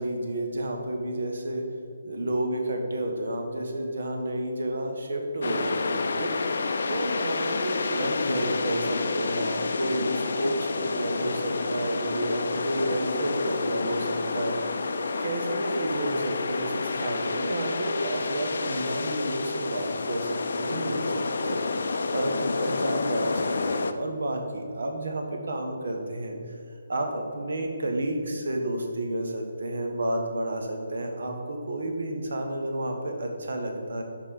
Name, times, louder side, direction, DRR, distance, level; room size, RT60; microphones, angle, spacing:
voice 1, 0.0-1.7 2.0-6.3 6.9-14.5 15.2-21.6 22.1-26.4 26.9-34.0, right 1 dB, 70° right, 3 dB, 1.3 m, -31 dB
sound 1, 5.4-23.9, left 3 dB, 65° left, 0.5 m, -29 dB
5.5 x 5.1 x 5.3 m, 2.4 s
hypercardioid pair, 170°, 0 cm